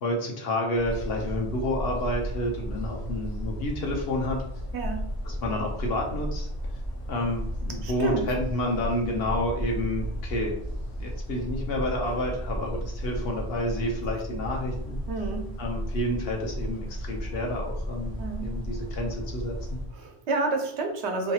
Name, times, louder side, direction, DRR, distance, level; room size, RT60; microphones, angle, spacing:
voice 1, 0.0-4.4 5.2-6.5 7.1-10.5 11.0-15.0 15.6-19.8, left 1 dB, 70° left, 1 dB, 0.9 m, -30 dB
sound 1, 0.7-19.9, equal, 50° left, 0.5 m, -34 dB
voice 2, 7.8-8.2 15.1-15.5 18.2-18.5 19.9-21.3, right 3 dB, 85° right, 3 dB, 0.9 m, -29 dB
2.7 x 2.3 x 2.8 m, 0.73 s
omnidirectional pair, 1.1 m